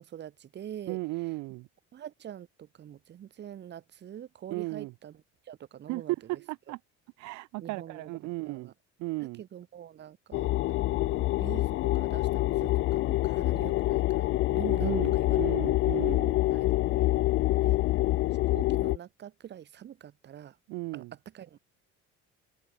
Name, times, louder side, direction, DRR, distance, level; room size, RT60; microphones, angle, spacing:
voice 1, 0.0-1.0 1.3-1.4 1.9-6.4 7.6-8.7 9.2-15.4 15.9-16.1 16.5-17.1 17.6-17.8 18.5-20.6 20.9-21.6, right 10 dB, 35° right, 3.5 m, -45 dB
voice 2, 0.9-1.7 4.5-4.9 5.9-6.0 6.3-6.8 7.2-8.7 9.0-9.4 14.8-16.4 20.7-21.1, right 22 dB, 70° right, 1.0 m, -35 dB
sound 1, 10.3-19.0, left 17 dB, 45° left, 0.4 m, -26 dB
cardioid pair, 170°, 29 cm